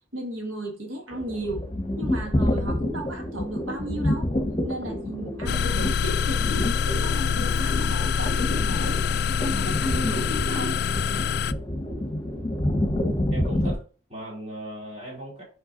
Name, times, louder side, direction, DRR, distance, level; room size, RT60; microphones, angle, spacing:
voice 1, 0.1-1.7 2.0-4.3 4.6-9.0 9.4-10.8, right 1 dB, 85° right, 1.9 m, -34 dB
sound 1, 1.1-13.7, left 1 dB, 20° left, 1.2 m, -28 dB
sound 2, 5.5-11.5, left 6 dB, 55° left, 0.3 m, -25 dB
voice 2, 13.3-13.8 14.1-15.4, right 1 dB, 35° right, 3.7 m, -37 dB
5.9 x 5.0 x 4.0 m
head